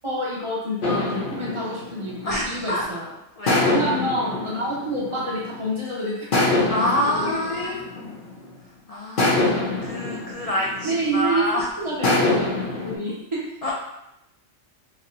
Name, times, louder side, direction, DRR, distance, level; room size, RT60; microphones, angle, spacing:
voice 1, 0.0-3.1 3.7-6.5 7.0-7.8 10.8-11.5 11.8-13.5, right 1 dB, 25° right, -6 dB, 0.9 m, -28 dB
sound 1, 0.8-2.9 3.5-5.7 6.3-8.6 9.2-11.3 12.0-13.0, left 2 dB, 45° left, 0.9 m, -25 dB
voice 2, 2.2-2.9 3.4-3.8 6.7-7.8 8.9-11.7 13.6-13.7, left 1 dB, 70° left, -4 dB, 0.3 m, -27 dB
4.1 x 2.9 x 2.6 m, 0.83 s
omnidirectional pair, 1.3 m